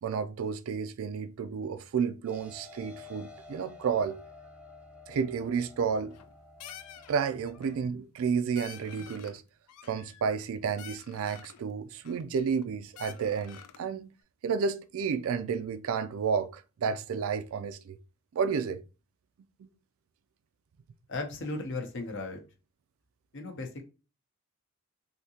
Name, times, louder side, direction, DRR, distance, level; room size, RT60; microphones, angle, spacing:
voice 1, 0.0-4.2 5.1-6.2 7.1-9.4 9.9-14.1 14.4-18.0 18.3-18.8, right 6 dB, 65° right, 0.3 m, -31 dB
sound 1, 2.3-7.8, left 3 dB, 5° right, 0.5 m, -51 dB
sound 2, 5.9-6.3 6.6-7.2 7.5-7.8 8.2-8.3 8.5-9.4 9.7-10.5 10.8-11.6 12.0-12.7 12.9-13.9, left 9 dB, 90° left, 0.4 m, -49 dB
voice 2, 21.1-22.4 23.3-23.8, left 2 dB, 55° left, 0.7 m, -36 dB
3.4 x 2.7 x 2.8 m
head